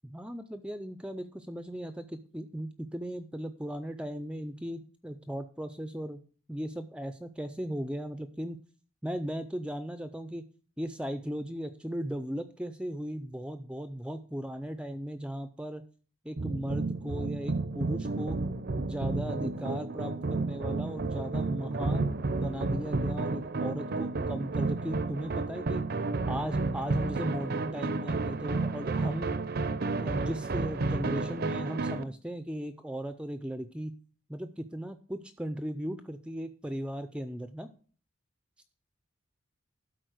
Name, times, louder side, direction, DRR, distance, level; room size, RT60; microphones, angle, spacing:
voice 1, 0.0-6.2 6.5-8.6 9.0-10.4 10.8-15.8 16.2-18.4 18.8-25.9 26.3-29.4 30.0-34.0 34.3-37.7, equal, 5° right, 9 dB, 0.5 m, -37 dB
sound 1, 16.4-32.0, right 3 dB, 50° right, 0.6 m, -31 dB
12.5 x 4.3 x 6.4 m, 0.40 s
head